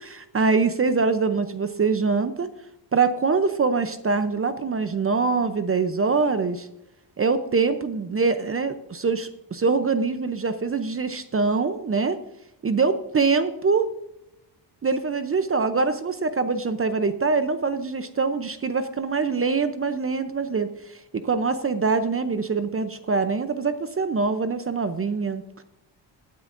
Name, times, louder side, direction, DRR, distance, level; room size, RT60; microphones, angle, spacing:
voice 1, 0.0-2.5 2.9-6.7 7.2-12.2 12.6-13.9 14.8-25.4, right 4 dB, 30° right, 10 dB, 0.6 m, -24 dB
15.5 x 9.6 x 2.6 m, 0.86 s
cardioid pair, 125°, 44 cm